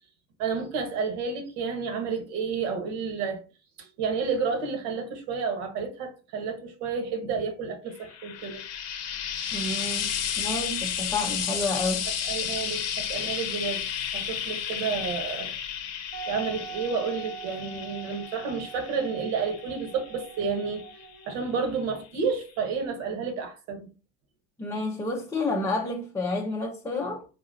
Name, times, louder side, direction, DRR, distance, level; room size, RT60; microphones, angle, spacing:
voice 1, 0.4-3.4 3.8-8.6 12.2-13.8 14.1-15.6 16.3-20.8 21.3-23.9, right 5 dB, 70° right, 1.2 m, -30 dB
Frying (food), 8.0-21.4 22.4-22.5, left 8 dB, 40° left, 0.7 m, -33 dB
voice 2, 9.5-12.1 24.6-27.3, left 2 dB, 10° left, 0.5 m, -30 dB
Wind instrument woodwind instrument, 16.1-21.7, right 7 dB, 40° right, 0.7 m, -42 dB
3.9 x 2.7 x 2.6 m
hypercardioid pair, 90°, 40 cm